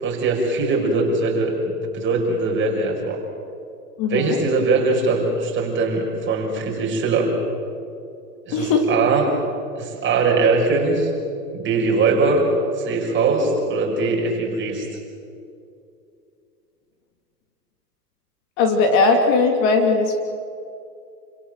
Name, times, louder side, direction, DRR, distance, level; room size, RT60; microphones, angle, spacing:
voice 1, 0.0-3.2 4.1-7.3 8.5-9.3 9.8-11.1 11.5-12.5 12.8-14.9, right 3 dB, 25° right, -1 dB, 6.0 m, -21 dB
voice 2, 4.0-4.4 8.5-8.9 18.6-20.2, left 4 dB, 40° left, 4 dB, 2.7 m, -18 dB
28.5 x 17.5 x 7.8 m, 2.5 s
hypercardioid pair, 125°, 49 cm